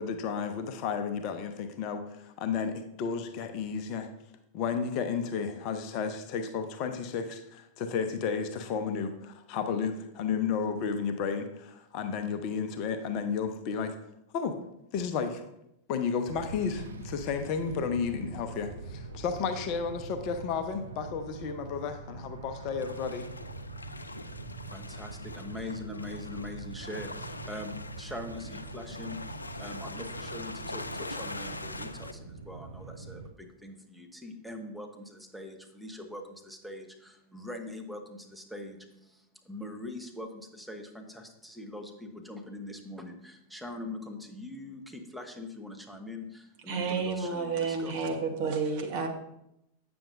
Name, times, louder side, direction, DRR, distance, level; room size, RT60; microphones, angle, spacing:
voice 1, 0.0-4.1 4.5-14.0 14.3-14.6 14.9-15.5 15.9-23.3, left 6 dB, 40° left, 8 dB, 0.7 m, -32 dB
sound 1, 16.3-33.3, right 4 dB, 70° right, 0.6 m, -44 dB
sound 2, 22.8-32.1, left 2 dB, 80° left, 0.4 m, -42 dB
voice 2, 24.7-48.0, left 1 dB, ahead, 3 dB, 1.0 m, -43 dB
voice 3, 46.7-49.1, right 4 dB, 45° right, 4 dB, 1.2 m, -30 dB
8.8 x 6.8 x 2.6 m, 0.81 s
figure-of-eight pair, 90°, 0 cm